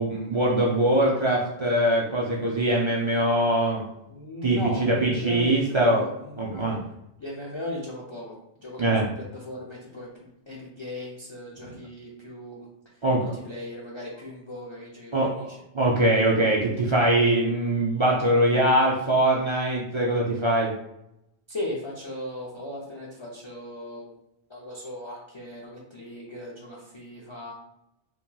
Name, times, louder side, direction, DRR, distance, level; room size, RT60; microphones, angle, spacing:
voice 1, 0.0-3.8 4.4-6.0 6.4-6.8 8.8-9.1 11.6-11.7 13.0-13.4 15.1-20.7, right 1 dB, 55° right, -4 dB, 0.3 m, -22 dB
voice 2, 4.1-6.7 7.2-15.6 21.5-24.2 24.5-27.5, left 1 dB, 40° left, -4 dB, 0.4 m, -38 dB
2.9 x 2.8 x 2.2 m, 0.83 s
omnidirectional pair, 1.1 m